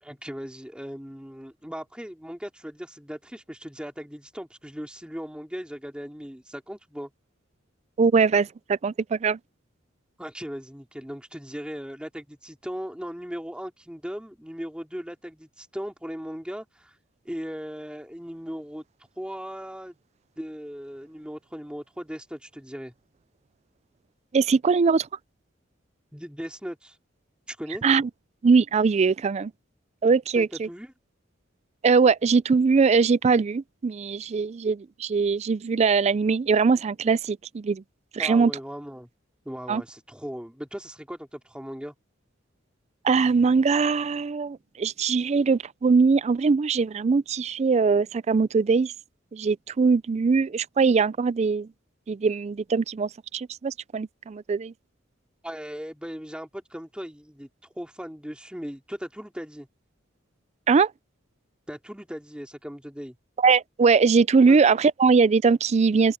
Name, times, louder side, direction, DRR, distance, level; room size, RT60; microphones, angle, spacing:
voice 1, 0.0-7.1 10.2-16.9 17.2-18.8 19.2-20.0 20.4-22.9 26.1-27.0 27.5-27.8 30.3-30.9 38.2-39.1 39.4-41.9 55.4-57.5 57.7-59.7 61.7-63.2 64.5-64.6, equal, 5° right, 3.0 m, -38 dB
voice 2, 8.0-9.4 24.3-25.1 27.8-28.1 28.4-29.5 30.0-30.7 31.8-37.8 38.1-38.5 39.7-39.8 43.0-48.9 49.3-51.7 52.1-54.7 60.7-60.9 63.4-66.2, right 5 dB, 35° right, 0.3 m, -21 dB
head